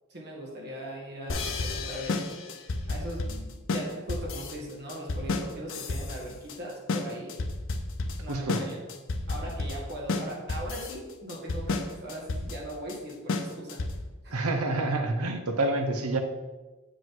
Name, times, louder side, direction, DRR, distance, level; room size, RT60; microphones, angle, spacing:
voice 1, 0.1-2.3 2.9-7.4 8.2-8.8 9.3-13.8, right 1 dB, 50° right, -2 dB, 1.7 m, -39 dB
sound 1, 1.3-14.2, left 3 dB, 60° left, 0.6 m, -32 dB
voice 2, 8.3-8.6 14.3-16.2, right 2 dB, 80° right, 6 dB, 0.8 m, -28 dB
7.5 x 5.0 x 3.8 m, 1.2 s
head